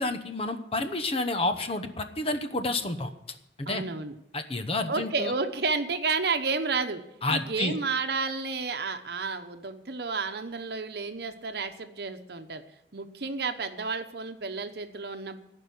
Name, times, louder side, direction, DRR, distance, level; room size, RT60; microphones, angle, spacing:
voice 1, 0.0-3.8 4.3-5.3 7.2-7.7, left 2 dB, 35° left, 8 dB, 0.8 m, -30 dB
voice 2, 3.7-4.1 4.9-7.0 7.3-12.6 12.9-15.4, right 4 dB, 65° right, 8 dB, 1.0 m, -31 dB
14.0 x 5.4 x 9.4 m, 0.87 s
head